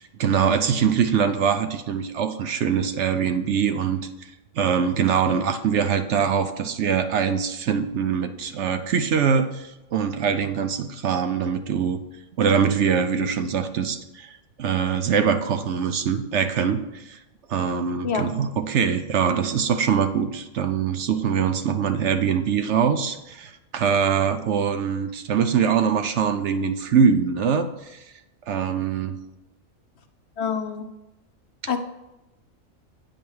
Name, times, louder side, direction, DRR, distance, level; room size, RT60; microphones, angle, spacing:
voice 1, 0.0-4.0 4.5-12.0 12.4-14.3 14.6-17.2 17.5-28.0 28.5-29.2, right 7 dB, 65° right, 9 dB, 0.9 m, -23 dB
voice 2, 30.4-30.9 31.7-31.8, left 6 dB, 60° left, 7 dB, 0.8 m, -26 dB
8.9 x 5.2 x 6.3 m, 0.96 s
omnidirectional pair, 1.4 m